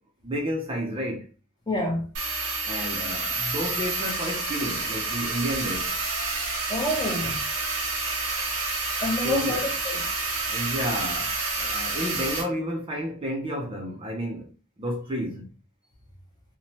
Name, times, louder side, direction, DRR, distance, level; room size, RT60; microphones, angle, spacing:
voice 1, 0.2-1.3 2.6-6.0 9.2-9.7 10.5-14.5 14.8-15.5, equal, 25° right, 0.5 m, -31 dB
voice 2, 1.7-2.1 6.7-7.4 9.0-10.1, left 1 dB, 20° left, 0.7 m, -28 dB
sound 1, 2.1-12.4, right 3 dB, 90° right, 1.1 m, -29 dB
2.9 x 2.1 x 2.9 m
head